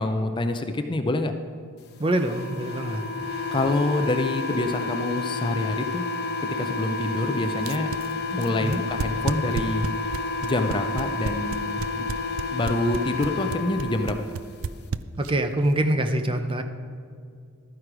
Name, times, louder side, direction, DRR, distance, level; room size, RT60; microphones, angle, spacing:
voice 1, 0.0-1.3 3.5-6.0 6.4-7.9 8.3-9.9 10.4-12.1 12.5-14.2, left 2 dB, 20° left, 7 dB, 0.5 m, -26 dB
voice 2, 2.0-3.0 8.6-8.8 15.2-16.6, right 1 dB, 25° right, 7 dB, 0.6 m, -24 dB
sound 1, 2.1-14.2, left 3 dB, 50° left, 1.0 m, -30 dB
sound 2, 7.6-15.5, right 5 dB, 70° right, 0.4 m, -31 dB
12.5 x 9.3 x 5.0 m, 2.3 s
head